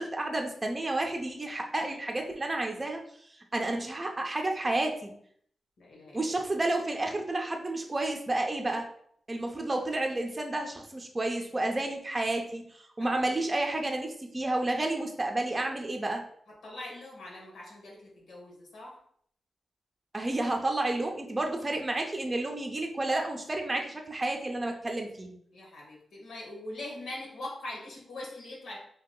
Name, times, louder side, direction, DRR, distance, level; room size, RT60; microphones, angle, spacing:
voice 1, 0.0-3.0 3.5-5.1 6.1-8.9 9.3-16.2 20.1-25.3, right 2 dB, 25° right, 2 dB, 0.5 m, -31 dB
voice 2, 5.8-6.3 13.0-13.4 16.5-19.0 25.5-28.8, left 1 dB, 90° left, -2 dB, 1.2 m, -42 dB
2.8 x 2.7 x 3.8 m, 0.65 s
cardioid pair, 85°, 0 cm